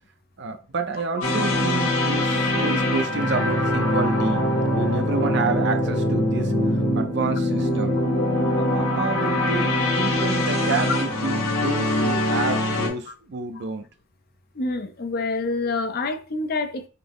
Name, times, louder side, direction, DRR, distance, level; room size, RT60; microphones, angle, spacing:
voice 1, 0.4-4.4 4.7-6.5 7.0-8.0 8.6-13.8, right 4 dB, 55° right, 0.5 m, -29 dB
sound 1, 1.2-12.9, left 1 dB, 80° left, 1.2 m, -23 dB
voice 2, 14.6-16.9, left 3 dB, 45° left, 0.5 m, -27 dB
5.6 x 2.0 x 3.5 m
head